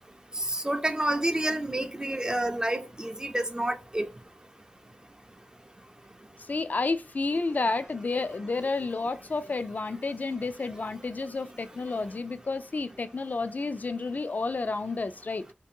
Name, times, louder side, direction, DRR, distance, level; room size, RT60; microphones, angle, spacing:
voice 1, 0.3-4.1, right 1 dB, 20° right, 0.4 m, -29 dB
voice 2, 6.5-15.4, left 3 dB, 50° left, 0.3 m, -30 dB
2.6 x 2.5 x 2.6 m
cardioid pair, 45°, 4 cm